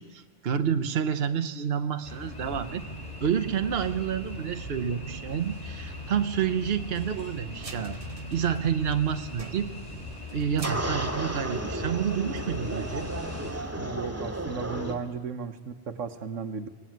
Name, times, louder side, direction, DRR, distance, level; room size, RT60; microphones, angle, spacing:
voice 1, 0.0-2.8 3.2-8.0 8.3-9.7 10.3-13.1, right 8 dB, 55° right, 8 dB, 1.2 m, -29 dB
sound 1, 2.0-13.5, left 1 dB, 30° left, 4.7 m, -39 dB
sound 2, 7.5-9.0 9.3-12.0 12.4-12.5 12.9-13.9, right 4 dB, 30° right, 1.0 m, -46 dB
sound 3, 10.6-14.9, right 1 dB, 10° right, 2.0 m, -33 dB
voice 2, 13.8-16.7, right 6 dB, 80° right, 9 dB, 1.5 m, -35 dB
23.5 x 19.0 x 9.3 m, 1.4 s
omnidirectional pair, 1.3 m